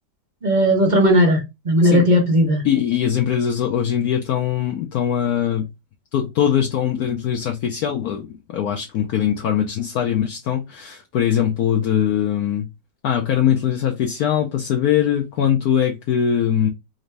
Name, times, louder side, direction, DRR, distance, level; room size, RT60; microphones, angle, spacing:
voice 1, 0.4-2.6, equal, 35° right, 0.7 m, -16 dB
voice 2, 2.6-5.7 6.1-12.7 13.0-16.7, left 9 dB, 70° left, 1.0 m, -21 dB
4.0 x 2.6 x 3.2 m
omnidirectional pair, 2.0 m